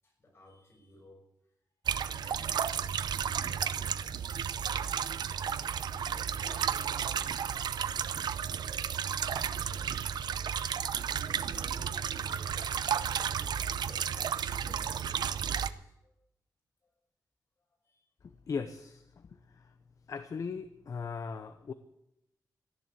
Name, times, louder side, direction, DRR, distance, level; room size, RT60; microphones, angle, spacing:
voice 1, 0.0-1.2 1.9-3.0 3.4-9.9 11.1-16.1 17.8-18.0, left 1 dB, 35° left, 0 dB, 6.1 m, -56 dB
sound 1, 1.9-15.7, right 8 dB, 90° right, 0.6 m, -33 dB
voice 2, 18.2-19.3 19.5-19.7 20.1-21.7, left 5 dB, 50° left, 10 dB, 0.8 m, -38 dB
14.0 x 11.0 x 8.2 m, 0.82 s
wide cardioid pair, 140°, 7 cm